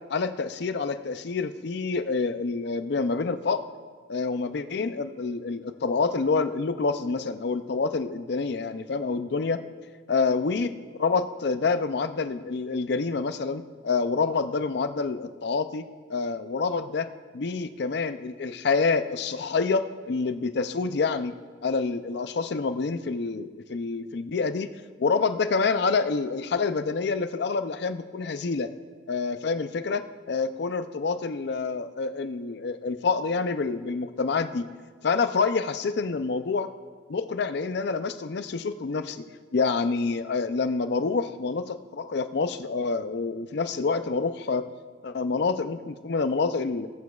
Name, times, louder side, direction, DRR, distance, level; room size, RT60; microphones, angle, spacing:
voice 1, 0.1-3.6 4.1-9.6 10.1-17.1 17.3-21.3 21.6-24.7 25.0-28.7 29.1-34.7 35.0-36.7 37.1-39.2 39.5-44.7 45.0-46.9, left 4 dB, 55° left, 11 dB, 0.4 m, -27 dB
19.5 x 8.1 x 2.4 m, 1.5 s
head